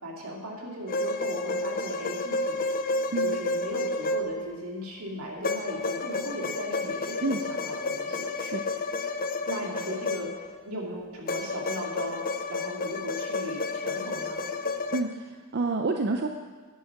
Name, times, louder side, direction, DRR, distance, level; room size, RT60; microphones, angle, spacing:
voice 1, 0.0-2.8 3.2-8.3 9.4-14.4, equal, 80° right, -1 dB, 2.4 m, -37 dB
sound 1, 0.9-4.7 5.4-10.6 11.3-15.0, left 3 dB, 40° left, 0.6 m, -31 dB
voice 2, 14.9-16.3, right 3 dB, 50° right, 4 dB, 0.6 m, -29 dB
9.5 x 9.4 x 5.8 m, 1.4 s
head